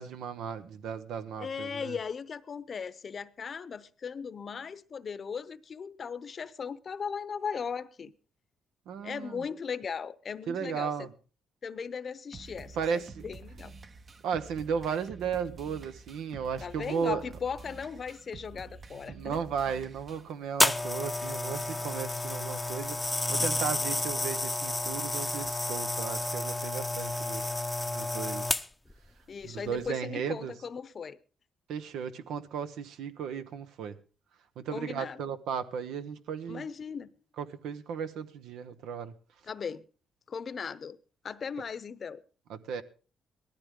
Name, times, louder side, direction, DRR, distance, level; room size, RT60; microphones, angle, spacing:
voice 1, 0.0-2.0 8.9-9.4 10.5-11.1 12.8-13.2 14.2-17.2 19.0-27.4 27.9-28.5 29.4-30.5 31.7-33.9 34.6-36.6 37.4-39.1 42.5-42.8, right 7 dB, 85° right, 1.0 m, -35 dB
voice 2, 1.4-8.1 9.0-11.1 11.6-13.7 16.6-19.4 29.3-31.2 34.7-35.4 36.5-37.1 39.4-39.9 40.3-41.0 41.2-42.2, left 6 dB, 45° left, 0.8 m, -38 dB
sound 1, 12.3-20.3, right 4 dB, 40° right, 0.9 m, -48 dB
sound 2, 20.6-28.9 29.7-29.9, left 2 dB, 15° left, 0.7 m, -31 dB
18.5 x 13.5 x 3.7 m
cardioid pair, 90°, 0 cm